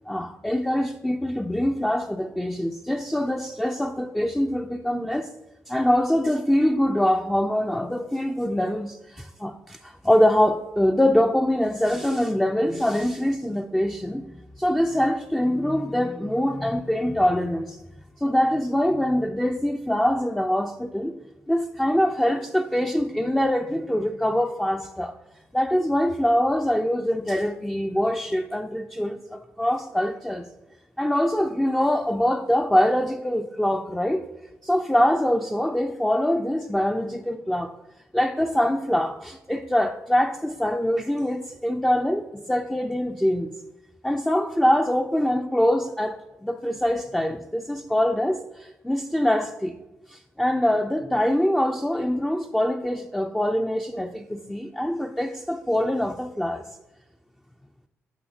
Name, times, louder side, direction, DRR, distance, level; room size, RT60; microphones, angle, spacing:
voice 1, 0.1-5.3 5.7-17.8 18.2-21.1 21.5-25.2 25.5-30.5 31.0-34.2 34.6-37.7 38.1-43.5 44.0-49.7 50.1-56.6, left 1 dB, 5° left, 3 dB, 0.4 m, -24 dB
8.7 x 6.3 x 2.7 m, 1.0 s
cardioid pair, 80°, 6 cm